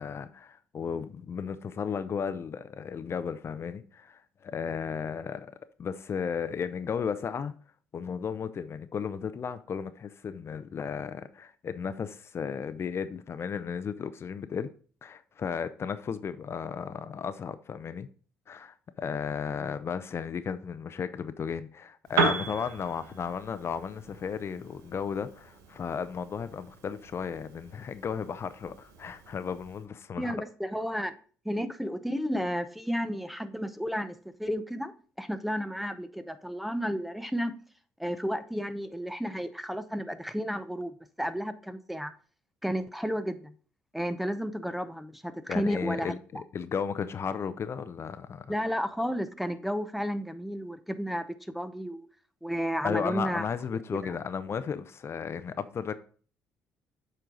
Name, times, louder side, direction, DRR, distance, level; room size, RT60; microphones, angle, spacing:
voice 1, 0.0-7.5 7.9-14.7 15.0-18.1 18.5-30.4 45.5-48.6 52.8-55.9, left 6 dB, 45° left, 0.6 m, -34 dB
Piano, 22.0-29.9, right 4 dB, 75° right, 1.3 m, -36 dB
voice 2, 30.2-31.1 31.4-37.6 38.0-42.1 42.6-43.5 43.9-46.4 48.5-52.1 52.4-53.4 53.7-54.2, equal, ahead, 0.7 m, -32 dB
8.0 x 4.5 x 3.8 m
hypercardioid pair, 60°, 6 cm